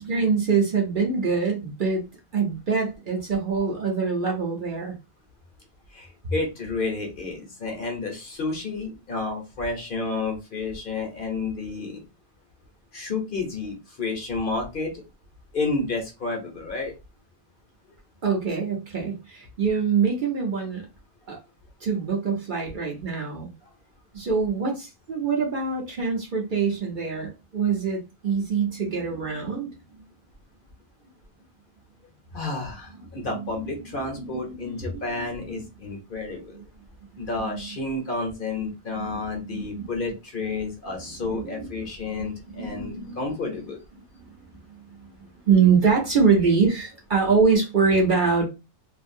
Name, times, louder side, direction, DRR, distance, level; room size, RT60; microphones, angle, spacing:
voice 1, 0.0-2.0 2.3-4.9 18.2-20.9 21.3-21.4 21.8-23.5 24.1-29.7 33.3-33.4 33.9-35.2 36.5-36.6 37.4-37.7 38.9-39.9 40.8-43.2 44.2-48.4, right 5 dB, 50° right, 0 dB, 0.8 m, -25 dB
voice 2, 5.9-12.0 12.9-14.9 15.5-16.9 32.3-36.6 37.2-43.8, left 3 dB, 50° left, 1 dB, 0.9 m, -31 dB
2.5 x 2.5 x 2.5 m, 0.27 s
omnidirectional pair, 1.2 m